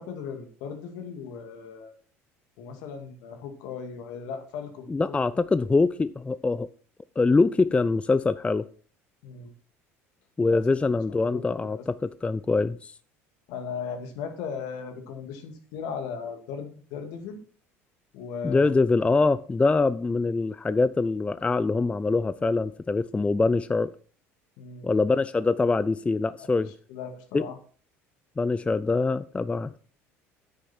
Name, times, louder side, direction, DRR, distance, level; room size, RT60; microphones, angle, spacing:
voice 1, 0.0-1.9 2.6-5.2 9.2-9.5 10.5-10.6 11.3-11.7 13.5-17.4 18.1-18.8 24.6-24.9 26.4-26.5 26.9-27.6, left 6 dB, 65° left, 2.2 m, -37 dB
voice 2, 4.9-6.7 7.2-8.7 10.4-13.0 18.4-23.9 24.8-26.7 27.3-27.5 28.4-29.8, left 3 dB, 15° left, 0.5 m, -24 dB
9.8 x 8.8 x 4.4 m
hypercardioid pair, 70°, 8 cm